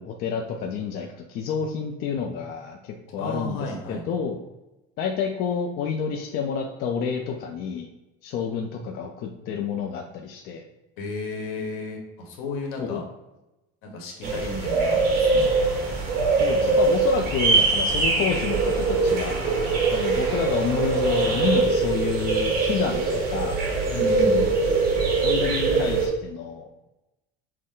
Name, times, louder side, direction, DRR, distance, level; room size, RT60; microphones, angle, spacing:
voice 1, 0.0-4.4 5.0-7.9 8.2-10.6 12.8-13.0 16.4-23.6 24.3-24.5 25.2-26.6, left 6 dB, 50° left, 2 dB, 0.5 m, -29 dB
voice 2, 3.2-4.0 11.0-13.0 13.8-15.4 23.8-24.5, left 2 dB, 75° left, 1 dB, 1.4 m, -33 dB
sound 1, 14.2-26.1, right 3 dB, 50° right, 1.5 m, -22 dB
Singing / Musical instrument, 15.4-21.6, right 1 dB, 15° right, 1.5 m, -41 dB
6.3 x 2.1 x 3.8 m, 0.98 s
cardioid pair, 160°, 21 cm